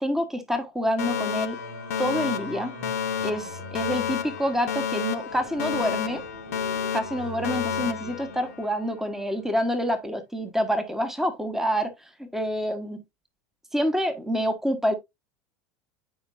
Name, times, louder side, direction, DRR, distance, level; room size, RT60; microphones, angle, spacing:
voice 1, 0.0-1.6 2.0-2.7 3.2-6.2 6.9-13.0 13.7-14.9, equal, 5° right, 1.3 m, -27 dB
Alarm, 1.0-9.0, left 8 dB, 65° left, 0.9 m, -31 dB
Singing, 1.5-8.9, equal, 60° right, 1.8 m, -42 dB
10.0 x 5.4 x 2.6 m
figure-of-eight pair, 80°, 8 cm